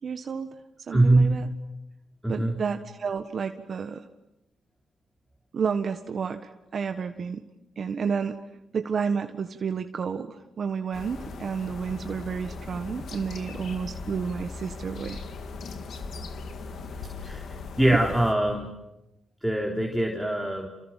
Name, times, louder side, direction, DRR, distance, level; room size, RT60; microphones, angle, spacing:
voice 1, 0.0-0.5 0.9-1.5 2.3-4.0 5.5-7.5 7.8-8.4 8.7-15.2, right 6 dB, 55° right, 7 dB, 1.5 m, -31 dB
voice 2, 0.9-1.4 2.2-2.6 17.2-17.4 17.8-18.7 19.4-20.7, right 1 dB, ahead, 0 dB, 3.9 m, -22 dB
sound 1, 10.9-18.3, left 4 dB, 65° left, 2.9 m, -38 dB
28.5 x 28.0 x 7.6 m, 0.92 s
cardioid pair, 80°, 0 cm